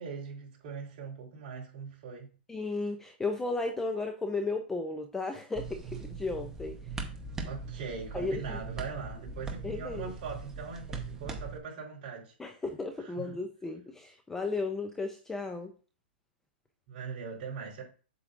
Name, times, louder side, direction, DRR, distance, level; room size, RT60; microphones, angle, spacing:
voice 1, 0.0-2.3 7.4-12.3 13.0-13.3 16.9-17.8, right 5 dB, 40° right, 3.7 m, -41 dB
voice 2, 2.5-6.8 8.1-8.6 9.6-10.1 12.4-15.7, left 3 dB, 5° left, 0.5 m, -34 dB
sound 1, 5.6-11.6, right 4 dB, 10° right, 0.9 m, -40 dB
8.0 x 7.2 x 2.5 m
hypercardioid pair, 160°, 6 cm